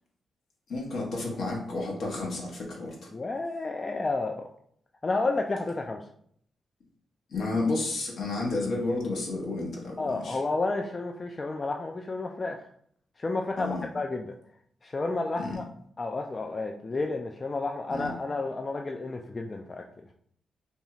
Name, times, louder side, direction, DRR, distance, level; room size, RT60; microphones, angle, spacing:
voice 1, 0.7-3.1 7.3-10.4 13.6-13.9 15.4-15.6 17.9-18.1, left 2 dB, 70° left, -2 dB, 0.9 m, -31 dB
voice 2, 3.1-4.5 5.0-6.0 10.0-12.7 13.2-14.3 14.8-15.6 16.0-19.8, left 3 dB, 40° left, 2 dB, 0.3 m, -31 dB
2.7 x 2.3 x 2.8 m, 0.64 s
supercardioid pair, 50°, 0 cm